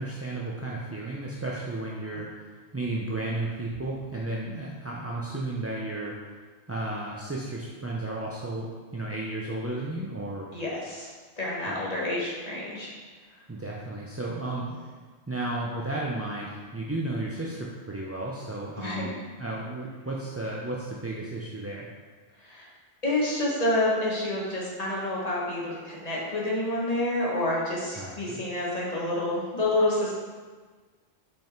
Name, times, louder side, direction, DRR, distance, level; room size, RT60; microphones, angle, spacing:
voice 1, 0.0-2.5 2.7-6.1 6.7-10.5 11.7-11.8 13.5-14.7 15.3-19.1 19.4-21.9 28.0-28.4, right 2 dB, 20° right, -4 dB, 0.4 m, -33 dB
voice 2, 10.5-11.1 11.4-12.9 18.8-19.1 22.4-22.7 23.0-30.1, left 1 dB, 35° left, -5 dB, 1.6 m, -28 dB
5.5 x 5.5 x 4.5 m, 1.4 s
omnidirectional pair, 1.2 m